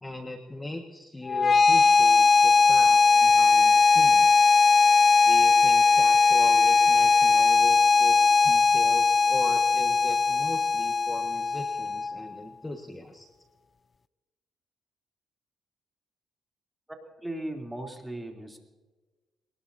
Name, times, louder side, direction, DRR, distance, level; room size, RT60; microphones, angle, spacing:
voice 1, 0.0-4.5 5.2-13.3, left 1 dB, 15° left, 3 dB, 1.7 m, -39 dB
sound 1, 1.3-12.3, left 4 dB, 35° left, 0.4 m, -20 dB
Bowed string instrument, 2.8-7.7, left 8 dB, 80° left, 1.0 m, -43 dB
voice 2, 16.9-18.6, right 1 dB, 5° right, 2 dB, 3.2 m, -37 dB
23.0 x 20.0 x 2.8 m, 1.2 s
cardioid pair, 90°, 0 cm